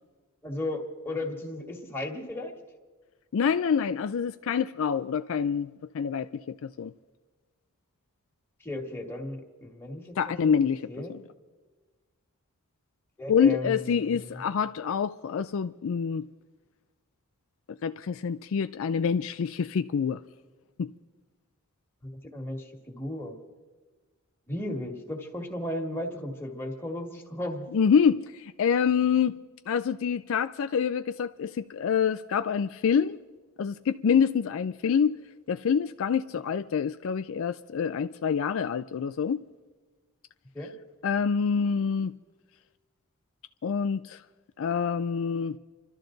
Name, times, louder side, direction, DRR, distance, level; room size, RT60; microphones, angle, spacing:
voice 1, 0.4-2.5 8.6-10.5 10.9-11.1 13.2-14.4 22.0-23.4 24.5-27.7 40.5-40.7, left 1 dB, 10° left, 1.9 m, -35 dB
voice 2, 3.3-6.9 10.2-10.8 11.1-11.2 13.3-16.3 17.8-20.2 20.8-20.9 27.7-29.3 29.7-33.2 33.6-35.2 35.5-39.4 41.0-42.1 43.6-44.2 44.6-45.6, left 7 dB, 65° left, 0.4 m, -26 dB
29.0 x 12.5 x 3.9 m
head